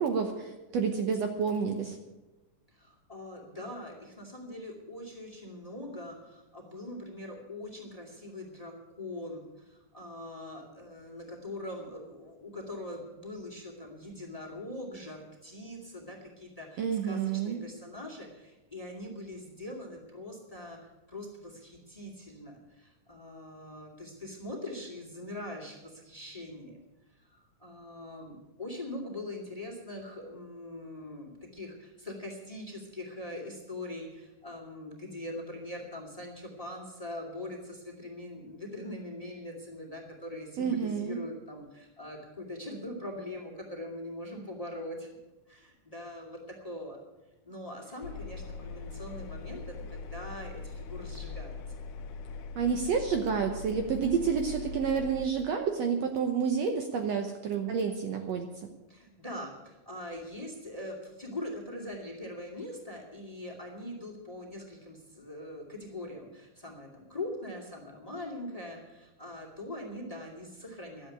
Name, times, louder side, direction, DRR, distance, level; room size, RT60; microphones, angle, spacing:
voice 1, 0.0-2.0 16.8-17.6 40.6-41.2 52.6-58.5, right 6 dB, 65° right, 5 dB, 1.9 m, -29 dB
voice 2, 2.7-26.8 27.1-45.1 45.5-47.0 47.4-51.6 58.9-71.1, left 1 dB, 15° left, 1 dB, 2.1 m, -42 dB
Engine, 48.0-55.3, left 4 dB, 80° left, 2.3 m, -41 dB
13.0 x 7.9 x 10.0 m, 1.0 s
omnidirectional pair, 3.6 m